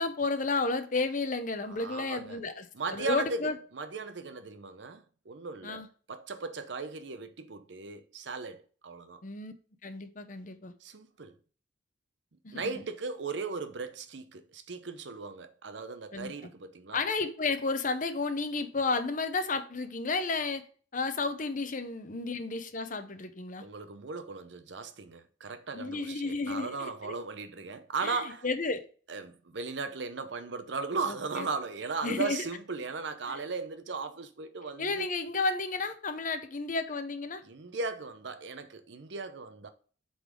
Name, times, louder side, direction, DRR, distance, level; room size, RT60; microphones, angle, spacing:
voice 1, 0.0-2.7 2.9-3.5 5.6-5.9 9.2-9.5 9.8-10.7 12.4-12.8 16.1-16.3 16.9-20.6 20.9-23.6 25.7-27.2 28.0-28.8 31.1-31.5 32.0-32.4 33.3-33.4 34.8-37.4, left 3 dB, 45° left, 0.8 m, -32 dB
voice 2, 1.7-2.4 2.7-9.2 10.8-11.3 12.5-17.0 23.6-28.4 29.1-35.1 37.4-39.7, right 4 dB, 70° right, 0.8 m, -37 dB
8.0 x 4.0 x 5.1 m
head